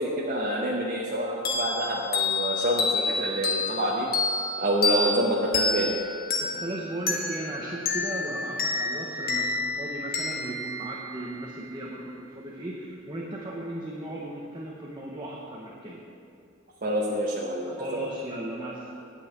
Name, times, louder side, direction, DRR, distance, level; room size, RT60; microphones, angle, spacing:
voice 1, 0.0-4.1 4.6-5.9 16.8-17.7, equal, 45° right, -5 dB, 1.1 m, -27 dB
sound 1, 1.5-11.7, left 3 dB, 50° left, 1.2 m, -29 dB
voice 2, 6.4-16.0 17.7-18.9, right 1 dB, 25° right, -4 dB, 1.0 m, -36 dB
9.7 x 5.6 x 8.1 m, 2.4 s
head